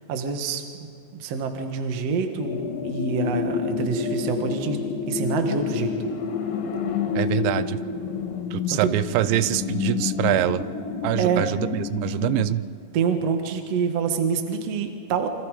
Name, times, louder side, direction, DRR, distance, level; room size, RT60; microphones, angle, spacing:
voice 1, 0.1-4.8 5.1-5.9 8.7-8.9 11.2-11.5 12.9-15.3, right 6 dB, 55° right, 5 dB, 1.9 m, -26 dB
sound 1, 2.4-12.5, left 6 dB, 90° left, 4.1 m, -28 dB
voice 2, 7.1-7.8 8.5-10.6 11.0-12.6, right 14 dB, 90° right, 14 dB, 3.0 m, -24 dB
28.0 x 24.5 x 5.0 m, 2.4 s
omnidirectional pair, 5.1 m